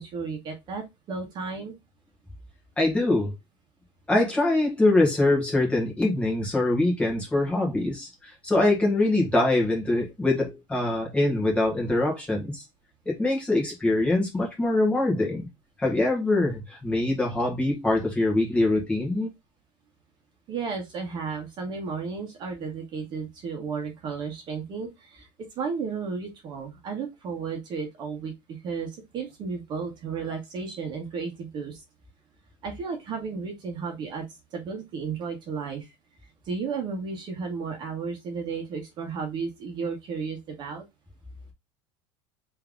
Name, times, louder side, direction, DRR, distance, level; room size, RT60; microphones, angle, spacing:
voice 1, 0.0-1.7 20.5-25.3 25.5-31.8 32.6-34.2 34.5-35.9 36.4-40.8, right 5 dB, 40° right, 1.6 m, -33 dB
voice 2, 2.8-3.3 4.1-12.6 13.0-15.5 15.8-19.3, left 2 dB, 10° left, 1.7 m, -24 dB
3.5 x 3.4 x 3.7 m
cardioid pair, 150°, 12 cm